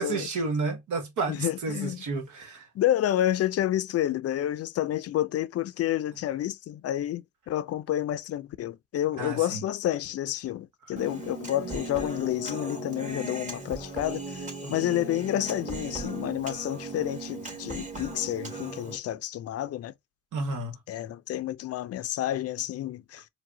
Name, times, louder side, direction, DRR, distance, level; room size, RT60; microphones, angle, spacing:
voice 1, 0.0-2.7 9.2-9.6 14.6-14.7 20.3-20.8, right 3 dB, 75° right, 1.2 m, -31 dB
voice 2, 1.3-2.0 2.7-19.9 20.9-23.3, left 12 dB, 55° left, 0.4 m, -29 dB
Human voice, 11.0-19.0, right 3 dB, 25° right, 1.9 m, -38 dB
4.7 x 2.2 x 2.8 m
cardioid pair, 90°, 30 cm